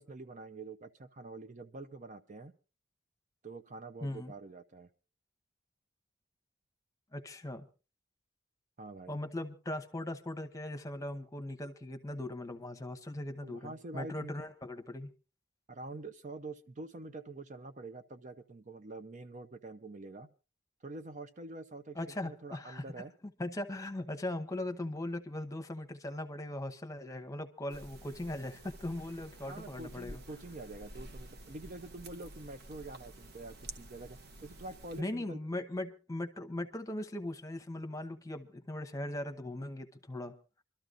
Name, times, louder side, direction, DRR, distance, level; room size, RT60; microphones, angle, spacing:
voice 1, 0.0-2.5 3.4-4.9 8.8-9.2 13.4-14.3 15.7-20.3 20.8-23.1 29.4-35.4, right 2 dB, 40° right, 10 dB, 0.6 m, -46 dB
voice 2, 4.0-4.3 7.1-7.6 9.1-15.1 21.9-22.8 23.4-30.2 35.0-40.4, left 1 dB, 20° left, 6 dB, 1.0 m, -39 dB
sound 1, 27.7-35.0, right 1 dB, 60° right, 1.0 m, -50 dB
26.5 x 13.0 x 2.5 m, 0.32 s
head